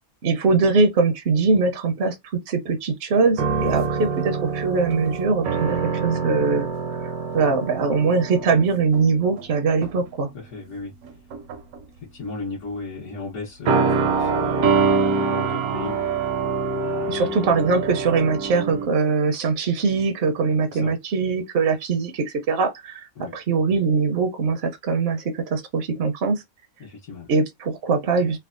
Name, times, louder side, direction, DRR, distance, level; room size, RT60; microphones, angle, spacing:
voice 1, 0.2-6.7 7.3-10.3 17.1-26.4 27.3-28.4, right 4 dB, 60° right, 0.6 m, -22 dB
sound 1, 3.3-9.5 9.8-10.1 11.0-11.8 13.7-18.9, right 4 dB, 80° right, 1.1 m, -25 dB
voice 2, 10.3-10.9 12.1-17.4 20.7-20.9 23.2-23.3 26.8-27.3, left 3 dB, 75° left, 1.4 m, -36 dB
3.4 x 2.1 x 2.4 m
omnidirectional pair, 1.6 m